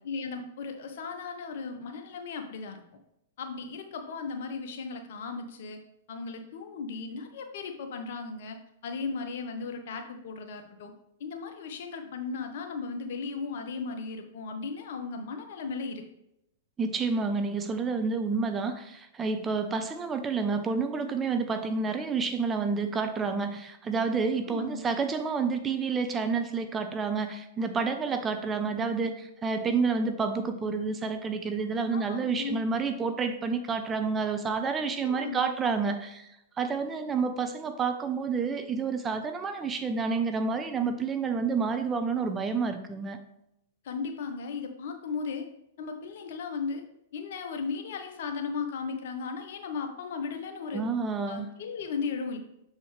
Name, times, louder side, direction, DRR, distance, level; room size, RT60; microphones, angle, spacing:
voice 1, 0.0-2.8 3.4-5.8 6.1-8.6 8.8-10.9 11.2-16.0 24.5-24.8 31.9-32.6 35.0-35.5 43.8-45.4 45.8-46.8 47.1-50.8 51.3-52.4, left 5 dB, 65° left, 5 dB, 1.0 m, -36 dB
voice 2, 16.8-36.3 36.6-43.2 50.7-51.5, right 4 dB, 20° right, 7 dB, 0.6 m, -29 dB
7.2 x 4.3 x 3.2 m, 0.82 s
hypercardioid pair, 115°, 0 cm